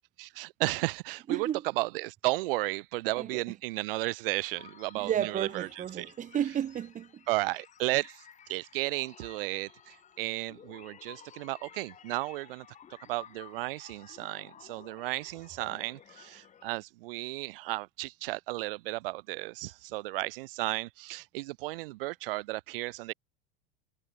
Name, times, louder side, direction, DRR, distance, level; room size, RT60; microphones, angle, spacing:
voice 1, 0.2-1.5 1.8-6.1 7.3-8.2 8.5-12.7 13.1-23.1, right 20 dB, 65° right, 3.9 m, -34 dB
voice 2, 1.3-1.6 3.2-3.4 4.9-7.2, right 10 dB, 25° right, 2.9 m, -32 dB
sound 1, 4.5-16.8, left 8 dB, 25° left, 5.3 m, -54 dB
supercardioid pair, 140°, 30 cm